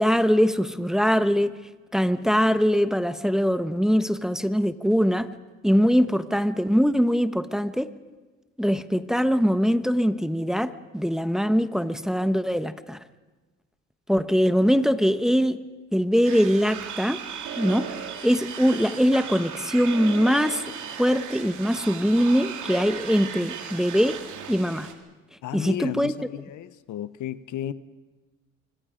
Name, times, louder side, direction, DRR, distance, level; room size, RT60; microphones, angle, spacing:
voice 1, 0.0-1.5 1.9-5.3 5.6-7.9 8.6-13.0 14.1-15.6 15.9-17.2 17.6-20.6 21.0-24.2 24.5-24.9 25.5-26.1, equal, ahead, 1.1 m, -22 dB
sound 1, 16.2-24.9, right 8 dB, 75° right, 2.6 m, -36 dB
voice 2, 25.4-27.7, left 12 dB, 75° left, 0.9 m, -33 dB
25.5 x 24.0 x 5.1 m
cardioid pair, 90°, 30 cm